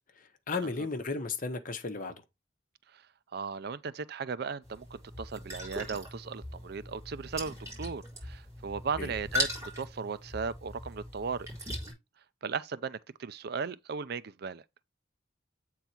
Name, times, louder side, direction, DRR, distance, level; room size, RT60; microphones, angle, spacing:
voice 1, 0.2-2.2 9.0-9.1, left 3 dB, 50° left, 1.1 m, -34 dB
voice 2, 3.3-9.5 9.8-11.5 12.4-14.6, right 5 dB, 60° right, 0.5 m, -37 dB
sound 1, 4.6-11.9, left 1 dB, 15° right, 4.0 m, -39 dB
8.1 x 3.9 x 4.4 m
head